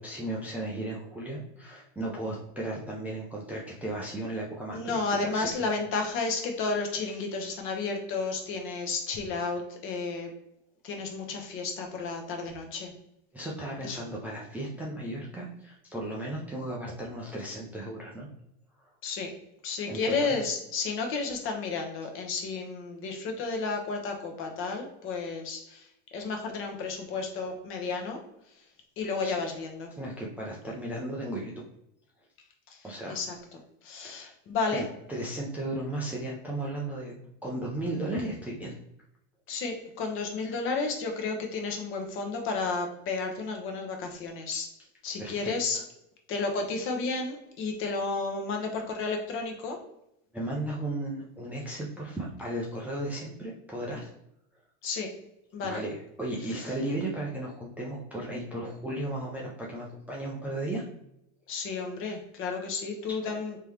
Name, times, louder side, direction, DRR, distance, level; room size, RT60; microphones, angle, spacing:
voice 1, 0.0-5.7 7.0-7.2 13.3-18.3 19.9-20.4 29.2-29.4 29.9-31.6 32.8-33.2 34.0-34.3 34.7-37.1 37.4-38.7 45.2-45.8 50.3-54.1 55.6-60.8 63.2-63.3, right 1 dB, 5° right, -4 dB, 0.4 m, -35 dB
voice 2, 4.7-10.3 10.8-12.9 13.8-14.0 19.0-19.3 19.6-28.2 28.6-28.7 29.0-29.9 32.7-33.4 33.8-34.9 39.5-44.7 45.0-45.8 46.3-49.8 54.8-55.1 55.5-55.8 56.5-56.6 61.5-63.6, left 4 dB, 40° left, 3 dB, 0.9 m, -32 dB
3.6 x 3.0 x 3.2 m, 0.81 s
supercardioid pair, 145°, 32 cm